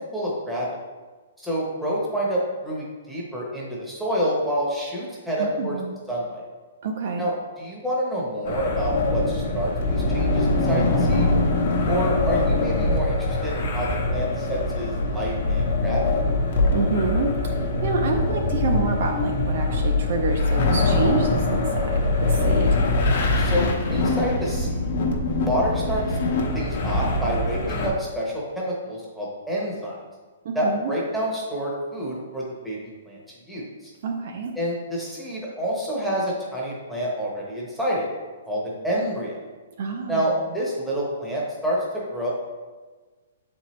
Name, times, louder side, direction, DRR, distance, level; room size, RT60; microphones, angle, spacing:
voice 1, 0.1-0.7 1.4-5.8 6.1-6.4 7.2-11.3 11.9-16.0 23.4-24.9 25.4-26.2 26.5-30.0 30.5-32.8 33.1-33.2 33.5-33.9 34.5-38.1 38.5-39.4 40.1-42.3, equal, ahead, -5 dB, 0.9 m, -28 dB
voice 2, 5.4-5.9 6.8-7.3 16.7-17.3 17.8-22.8 30.5-30.9 34.0-34.5 39.8-40.3, right 4 dB, 40° right, 3 dB, 0.4 m, -27 dB
sound 1, 8.4-27.9, left 2 dB, 45° left, 0.9 m, -23 dB
7.4 x 4.3 x 3.1 m, 1.4 s
hypercardioid pair, 180°, 0 cm